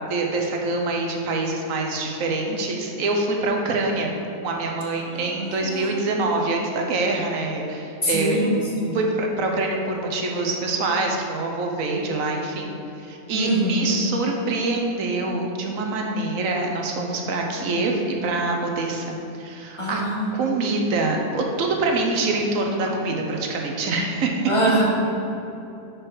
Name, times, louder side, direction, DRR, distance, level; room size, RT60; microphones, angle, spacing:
voice 1, 0.1-4.1 4.4-8.4 8.9-12.7 13.0-20.0 20.3-24.3, right 2 dB, 65° right, 1 dB, 1.1 m, -25 dB
voice 2, 5.1-6.2 8.0-9.0 13.3-14.0 19.8-20.6 24.5-24.8, right 1 dB, 25° left, -5 dB, 1.1 m, -24 dB
6.0 x 4.6 x 4.7 m, 2.9 s
omnidirectional pair, 1.6 m